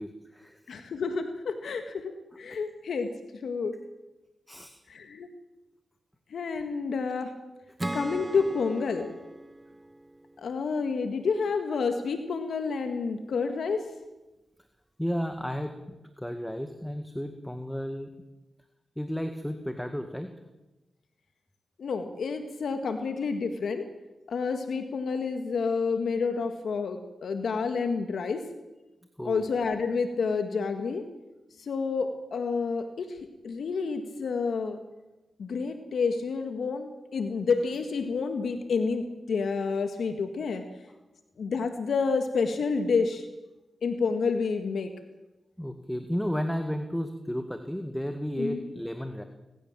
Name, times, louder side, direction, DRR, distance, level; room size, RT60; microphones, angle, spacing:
voice 1, 0.0-0.6 4.5-4.7 15.0-18.1 19.0-20.3 29.2-29.4 45.6-49.2, equal, 5° left, 7 dB, 1.9 m, -33 dB
voice 2, 0.7-2.1 2.4-3.1 3.4-3.8 4.9-5.3 6.3-7.3 7.9-9.1 10.4-13.9 21.8-23.9 24.3-28.4 29.3-31.1 31.6-33.2 33.4-34.8 35.4-40.6 41.4-43.3 43.8-44.9 48.4-48.6, left 5 dB, 75° left, 7 dB, 1.8 m, -29 dB
Acoustic guitar / Strum, 7.8-11.2, right 1 dB, 20° right, 0.8 m, -39 dB
24.5 x 15.5 x 7.5 m, 1.0 s
cardioid pair, 55°, 0 cm